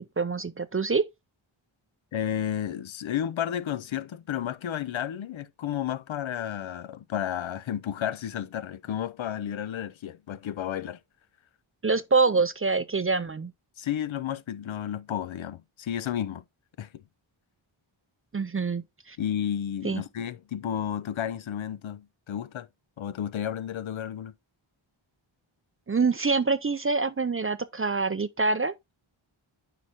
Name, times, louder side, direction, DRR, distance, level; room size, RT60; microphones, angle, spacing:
voice 1, 0.2-1.0 11.8-13.5 18.3-19.2 19.8-20.0 25.9-28.7, right 4 dB, 30° right, 0.4 m, -25 dB
voice 2, 2.1-11.0 13.8-16.4 16.8-17.0 19.2-22.7 23.0-24.3, left 10 dB, 70° left, 0.6 m, -32 dB
9.5 x 5.0 x 2.9 m
wide cardioid pair, 70°, 49 cm